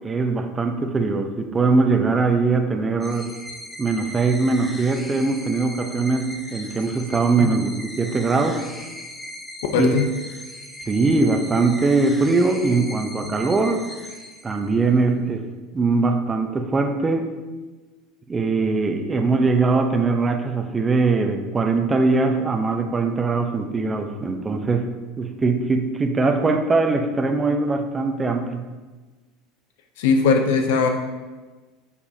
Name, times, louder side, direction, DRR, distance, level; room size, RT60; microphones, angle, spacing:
voice 1, 0.0-3.3 3.8-8.6 9.7-9.9 10.9-13.9 14.4-15.4 15.7-17.3 18.3-28.7, right 3 dB, 20° right, 6 dB, 0.8 m, -21 dB
sound 1, 3.0-14.9, left 1 dB, 5° left, 1.0 m, -38 dB
voice 2, 9.7-10.0 30.0-30.9, left 5 dB, 70° left, 5 dB, 0.7 m, -19 dB
6.9 x 6.9 x 2.8 m, 1.3 s
hypercardioid pair, 75°, 0 cm